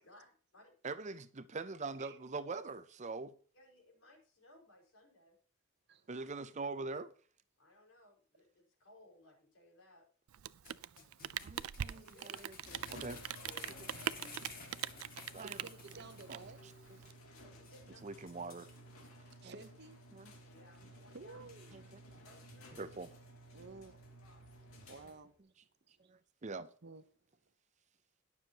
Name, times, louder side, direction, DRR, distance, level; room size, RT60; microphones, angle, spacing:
voice 1, 0.8-3.4 6.1-7.1 11.4-12.5 12.9-13.2 14.0-14.2 15.3-15.6 18.0-18.7 19.4-19.5 20.1-20.3 22.7-23.1 26.1-26.7, right 3 dB, 35° right, 0.6 m, -43 dB
voice 2, 3.5-5.4 7.6-10.1 11.8-12.4 12.7-13.1 13.4-13.7 17.3-18.0 20.5-21.4 22.2-22.8 23.7-23.8 24.2-24.4, left 1 dB, 65° left, 5.0 m, -63 dB
voice 3, 5.9-6.3 10.7-12.1 15.3-16.6 19.3-20.0 21.1-22.4 23.5-24.0 24.9-25.3 25.8-26.2 26.5-27.5, right 3 dB, 55° right, 0.9 m, -55 dB
Rain, 10.3-17.1, right 10 dB, 80° right, 0.4 m, -42 dB
sound 1, 10.7-16.4 16.7-16.8 17.2-17.3 17.6-17.8 18.3-19.1 19.6-19.7, left 4 dB, 45° left, 2.2 m, -54 dB
sound 2, 12.6-25.4, equal, 90° left, 2.6 m, -55 dB
20.5 x 7.1 x 2.9 m
head